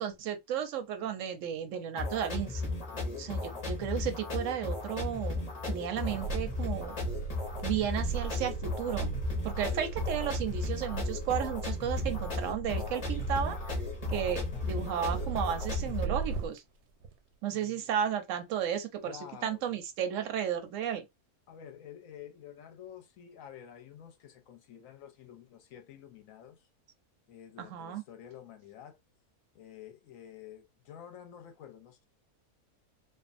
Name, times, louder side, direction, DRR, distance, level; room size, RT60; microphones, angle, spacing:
voice 1, 0.0-2.7 3.2-6.9 7.6-9.1 9.4-13.6 14.1-16.6 17.4-21.0 27.6-28.0, right 9 dB, 70° right, 0.8 m, -34 dB
sound 1, 2.0-16.0, left 3 dB, 35° left, 0.7 m, -35 dB
voice 2, 2.9-3.6 17.5-17.9 19.0-19.8 21.5-26.6 27.3-29.0 29.5-32.0, left 9 dB, 70° left, 1.0 m, -50 dB
sound 2, 5.9-16.6 17.0-17.1, right 4 dB, 90° right, 1.1 m, -38 dB
2.5 x 2.4 x 2.4 m
omnidirectional pair, 1.6 m